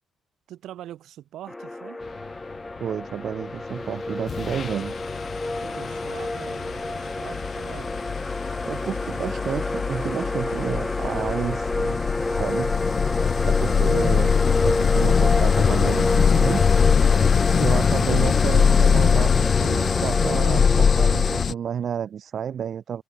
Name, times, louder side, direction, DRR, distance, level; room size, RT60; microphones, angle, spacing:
voice 1, 0.5-2.0 5.6-8.0, right 12 dB, 80° right, 2.9 m, -42 dB
sound 1, 1.5-21.4, left 2 dB, 15° left, 1.4 m, -29 dB
voice 2, 2.8-5.0 8.6-12.1 12.3-12.8 13.4-14.3 14.6-16.6 17.5-23.0, right 8 dB, 60° right, 0.4 m, -30 dB
sound 2, 3.7-3.9 4.3-21.5, left 6 dB, 45° left, 0.3 m, -22 dB
cardioid pair, 90°, 0 cm